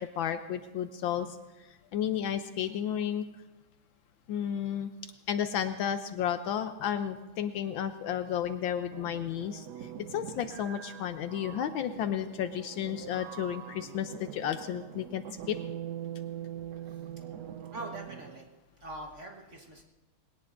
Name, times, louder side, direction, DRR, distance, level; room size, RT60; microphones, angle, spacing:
voice 1, 0.0-1.4 1.9-3.3 4.3-4.9 5.3-15.6, left 9 dB, 75° left, 9 dB, 1.3 m, -32 dB
sound 1, 8.9-18.4, right 10 dB, 75° right, 0.9 m, -43 dB
voice 2, 17.7-18.5 18.8-19.8, right 1 dB, 40° right, 0 dB, 1.4 m, -42 dB
20.5 x 18.0 x 2.5 m, 1.1 s
omnidirectional pair, 2.4 m